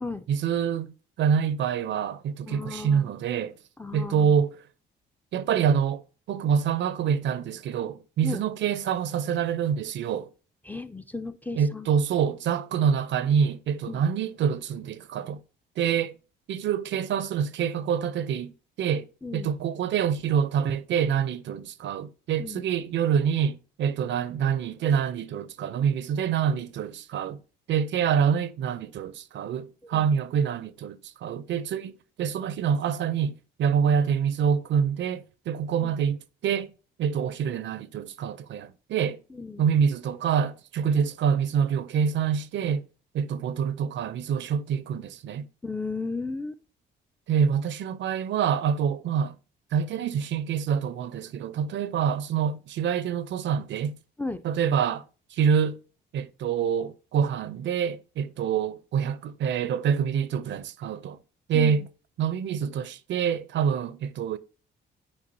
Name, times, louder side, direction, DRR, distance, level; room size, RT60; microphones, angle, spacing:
voice 1, 0.3-3.5 3.9-4.6 5.3-6.0 6.3-10.3 11.6-15.4 15.8-16.1 16.5-18.5 18.8-19.1 19.3-27.4 27.7-31.9 32.2-33.3 33.6-36.7 37.0-39.2 39.6-42.8 43.1-45.5 47.3-49.3 49.7-53.9 54.4-55.0 55.3-55.8 56.1-61.2 61.5-61.9 62.2-64.4, right 7 dB, 65° right, 0.5 m, -26 dB
voice 2, 2.5-3.1 3.8-4.3 8.2-8.4 10.7-11.9 13.9-14.0 19.2-19.5 22.4-22.6 29.9-30.0 35.8-35.9 39.3-39.6 45.6-46.6 54.2-54.4 61.5-61.8, left 3 dB, 10° left, 0.4 m, -34 dB
8.7 x 4.7 x 2.6 m
cardioid pair, 90°, 20 cm